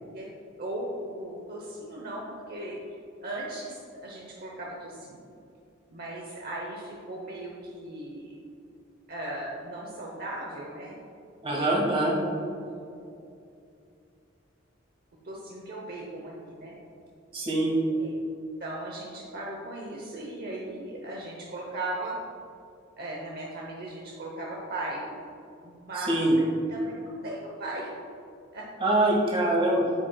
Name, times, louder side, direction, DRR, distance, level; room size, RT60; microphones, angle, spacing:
voice 1, 0.6-2.8 3.2-5.3 5.9-8.3 9.1-11.0 11.5-12.7 13.0-13.2 15.2-16.8 17.9-18.2 18.6-22.2 23.0-25.1 25.6-26.4 26.7-27.9 28.5-28.7, right 1 dB, 55° right, -2 dB, 0.8 m, -37 dB
voice 2, 11.4-12.2 17.3-17.7 26.1-26.3 28.8-29.8, right 1 dB, 30° right, -3 dB, 1.6 m, -24 dB
8.5 x 7.6 x 2.3 m, 2.5 s
head